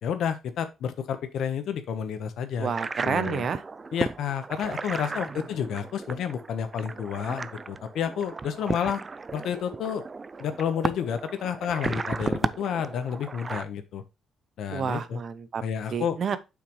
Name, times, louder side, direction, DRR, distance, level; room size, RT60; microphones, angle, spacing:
voice 1, 0.0-2.7 3.0-3.5 3.9-9.0 9.3-10.0 10.4-14.0 14.6-15.2 15.6-16.2, left 8 dB, 75° left, 1.1 m, -30 dB
voice 2, 2.6-3.6 14.7-15.6 15.9-16.4, right 6 dB, 55° right, 0.8 m, -29 dB
sound 1, 2.7-13.6, right 4 dB, 30° right, 0.4 m, -35 dB
7.3 x 5.8 x 3.2 m
cardioid pair, 90°, 0 cm